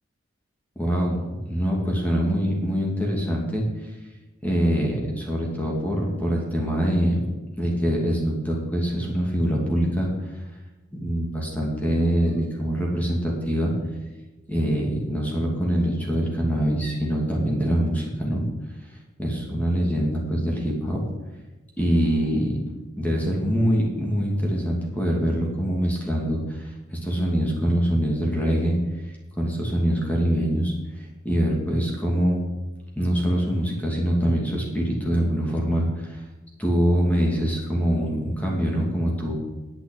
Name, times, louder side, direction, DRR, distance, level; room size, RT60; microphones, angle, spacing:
voice 1, 0.8-1.2 1.5-4.0 4.4-7.2 7.6-10.5 10.9-13.7 14.5-18.4 19.2-21.0 21.8-22.5 23.0-28.8 29.0-32.4 33.0-36.2 36.6-39.4, equal, 10° left, -2 dB, 2.3 m, -24 dB
9.1 x 8.0 x 8.6 m, 1.1 s
head